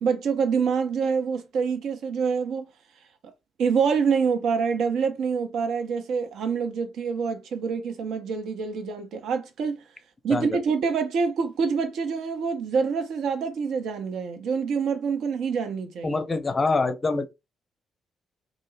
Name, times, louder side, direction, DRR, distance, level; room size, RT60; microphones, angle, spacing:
voice 1, 0.0-2.7 3.6-9.8 10.2-16.2, right 5 dB, 60° right, 0.5 m, -26 dB
voice 2, 10.3-10.6 16.0-17.3, left 3 dB, 30° left, 0.5 m, -25 dB
2.4 x 2.0 x 3.1 m
figure-of-eight pair, 40°, 0 cm